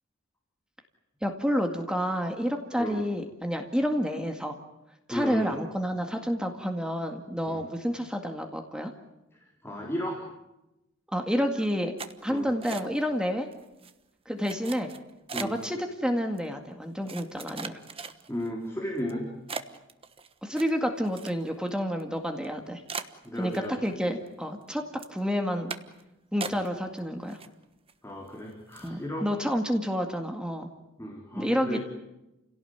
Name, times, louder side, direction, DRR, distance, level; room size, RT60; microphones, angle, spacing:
voice 1, 1.2-4.6 5.1-8.9 11.1-11.9 12.2-13.5 14.3-14.9 15.4-17.8 20.4-22.8 23.3-24.8 25.1-25.7 26.3-27.4 28.8-30.7 31.4-31.8, equal, 5° right, 4 dB, 2.0 m, -29 dB
voice 2, 5.1-5.5 7.5-7.6 9.6-10.2 12.3-12.5 15.3-15.6 18.3-19.3 23.2-23.7 26.5-26.6 28.0-29.3 31.0-31.8, equal, 10° left, -1 dB, 3.8 m, -34 dB
sound 1, 12.0-13.2 13.5-13.9 14.4-15.7 16.4-16.5 17.1-18.5 19.0-19.1 19.5-21.7 22.0-22.1 22.4-22.5 22.9-23.9 24.3-24.7 25.0-25.2 25.7-26.0 26.4-27.0 27.3-27.9 28.3-28.4 28.7-29.0, right 5 dB, 30° right, 1.2 m, -39 dB
30.0 x 17.5 x 9.5 m, 0.95 s
head